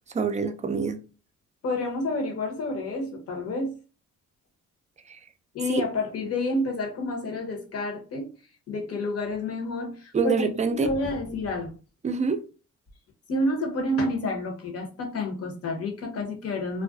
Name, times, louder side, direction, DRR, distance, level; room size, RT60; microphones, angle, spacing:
voice 1, 0.1-1.0 5.1-5.2 5.7-5.8 10.1-11.0 12.0-12.4, right 5 dB, 25° right, 0.4 m, -26 dB
voice 2, 1.6-3.7 5.5-8.3 8.7-11.7 13.3-16.8, left 2 dB, 55° left, 0.9 m, -29 dB
2.4 x 2.2 x 2.4 m
cardioid pair, 90°, 30 cm